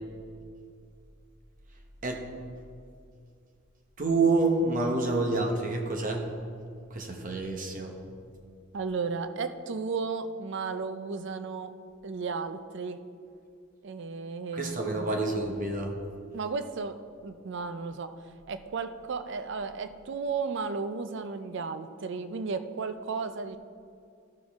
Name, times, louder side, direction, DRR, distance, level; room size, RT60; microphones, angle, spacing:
voice 1, 4.0-6.3 6.9-8.0 14.5-16.0, right 3 dB, 40° right, 2 dB, 0.9 m, -28 dB
voice 2, 8.7-11.7 12.0-13.0 13.8-15.1 16.3-17.0 17.2-18.1 18.5-23.6, right 4 dB, 60° right, 10 dB, 0.5 m, -34 dB
13.5 x 6.4 x 3.5 m, 2.4 s
head